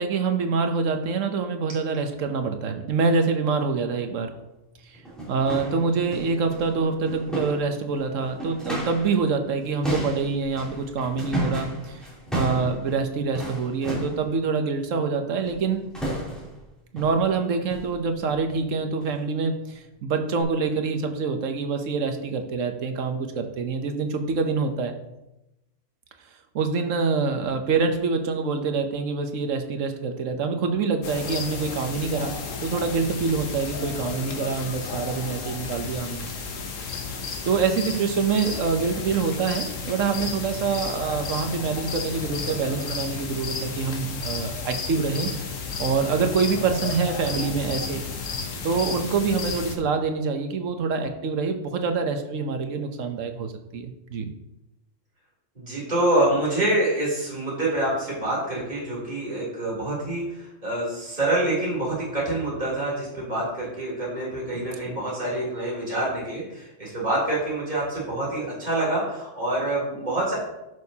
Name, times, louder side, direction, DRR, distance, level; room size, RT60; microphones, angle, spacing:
voice 1, 0.0-4.3 4.8-5.0 5.3-12.0 12.3-15.8 16.9-24.9 26.5-32.3 32.6-36.3 37.4-45.3 45.8-48.0 48.6-54.3 64.5-64.9, right 4 dB, 80° right, 6 dB, 1.2 m, -26 dB
sound 1, 4.3-4.4 4.9-9.2 9.4-14.3 15.4-15.7 15.9-16.6 17.0-17.3 17.7-17.9 18.3-18.5 19.0-19.2 19.7-19.8 20.4-20.5, right 1 dB, ahead, 3.1 m, -33 dB
sound 2, 31.0-49.8, left 5 dB, 85° left, 1.4 m, -33 dB
voice 2, 55.5-70.3, right 1 dB, 35° right, -8 dB, 3.4 m, -26 dB
11.0 x 6.5 x 2.8 m, 0.92 s
omnidirectional pair, 1.3 m